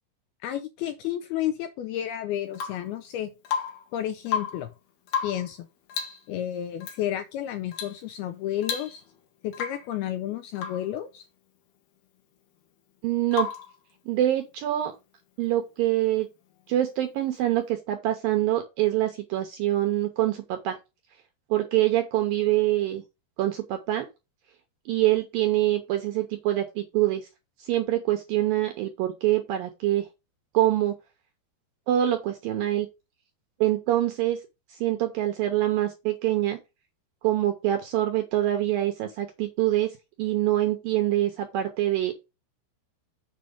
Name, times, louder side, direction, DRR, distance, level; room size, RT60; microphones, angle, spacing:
voice 1, 0.4-3.3 3.9-4.7 5.2-5.7 6.3-9.0 9.4-11.3, left 11 dB, 85° left, 2.3 m, -31 dB
Rain / Water tap faucet / Drip, 2.5-2.9 3.4-3.9 4.2-4.7 5.1-5.5 5.9-6.3 6.8-7.0 7.7-8.0 8.3-8.4 8.6-9.2 9.5-9.9 10.6-10.9 13.3-13.8 15.7-15.8, left 7 dB, 65° left, 3.2 m, -32 dB
voice 2, 13.0-13.5 14.1-14.9 15.4-16.3 16.7-20.8 21.5-23.0 23.4-24.1 24.9-27.3 27.6-30.1 30.5-30.9 31.9-32.9 33.6-34.4 34.8-36.6 37.2-42.1, right 14 dB, 80° right, 2.1 m, -25 dB
7.4 x 5.2 x 5.1 m
omnidirectional pair, 5.1 m